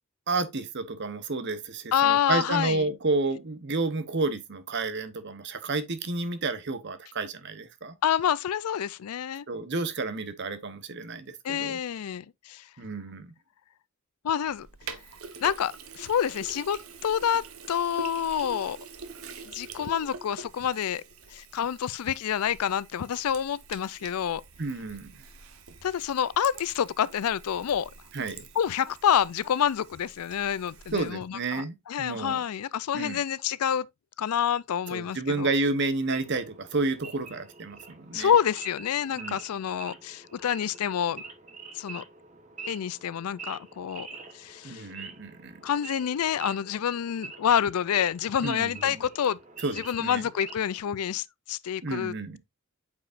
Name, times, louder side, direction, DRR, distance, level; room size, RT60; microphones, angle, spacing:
voice 1, 0.3-7.9 9.5-11.8 12.8-13.3 24.6-25.2 28.1-28.5 30.9-32.4 32.9-33.2 34.9-38.3 39.2-39.4 44.6-45.6 48.4-49.0 49.6-50.2 51.8-52.4, right 3 dB, 50° right, 0.9 m, -31 dB
voice 2, 1.9-2.9 8.0-9.5 11.4-12.6 14.2-14.7 15.4-18.8 19.4-21.0 21.3-24.4 25.8-27.9 28.6-33.9 34.2-35.5 38.1-41.2 41.7-42.0 42.7-44.1 44.3-44.9 45.6-49.4 49.7-52.4, left 9 dB, 85° left, 0.4 m, -28 dB
Sink (filling or washing), 14.5-31.1, right 5 dB, 80° right, 1.0 m, -46 dB
Wild animals / Idling, 36.1-50.8, right 4 dB, 35° right, 1.2 m, -46 dB
8.4 x 4.9 x 2.5 m
head